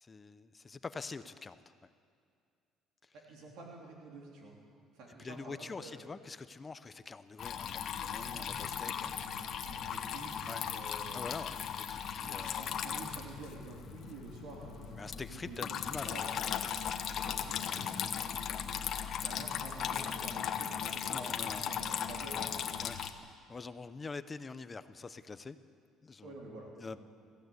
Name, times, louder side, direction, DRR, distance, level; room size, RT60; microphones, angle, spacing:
voice 1, 0.0-1.9 3.0-3.1 5.2-9.1 10.5-10.7 11.1-12.7 15.0-16.2 16.6-16.7 17.2-17.3 18.9-19.2 21.1-21.8 22.8-23.0 23.5-25.6 26.0-26.4 26.8-27.0, left 4 dB, 20° left, 12 dB, 0.6 m, -45 dB
voice 2, 3.1-4.6 4.9-6.0 8.1-11.4 12.2-15.8 16.0-16.4 17.1-18.1 19.2-22.7 26.2-27.0, right 2 dB, 60° right, -1 dB, 3.4 m, -49 dB
Water tap faucet / Trickle dribble, 7.4-23.1, left 8 dB, 40° left, 1.1 m, -37 dB
sound 1, 7.6-13.5, left 10 dB, 70° left, 1.4 m, -55 dB
22.0 x 15.5 x 9.5 m, 2.3 s
cardioid pair, 170°, 0 cm